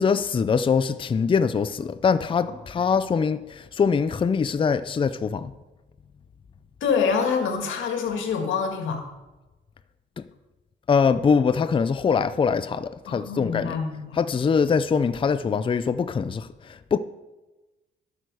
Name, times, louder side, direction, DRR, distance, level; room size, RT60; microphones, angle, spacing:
voice 1, 0.0-5.5 10.2-10.3 10.9-13.8 14.1-17.0, left 6 dB, 25° left, 0.5 m, -23 dB
voice 2, 6.8-9.0 13.1-14.2, left 6 dB, 75° left, 1.9 m, -26 dB
11.0 x 6.5 x 4.8 m
cardioid pair, 90°, 20 cm